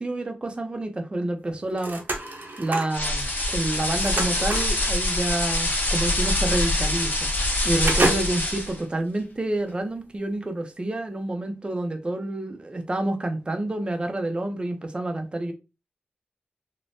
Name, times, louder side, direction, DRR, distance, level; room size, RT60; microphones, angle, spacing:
voice 1, 0.0-2.0 2.6-15.5, right 2 dB, 25° right, 0.6 m, -28 dB
sound 1, 1.5-3.0 3.5-4.8 5.9-6.1 6.5-6.6 7.0-7.5 7.8-8.6 9.1-9.2, right 2 dB, 55° right, 0.8 m, -29 dB
sound 2, 2.9-8.8, left 1 dB, 55° left, 0.9 m, -25 dB
3.3 x 2.1 x 2.6 m
wide cardioid pair, 90°, 4 cm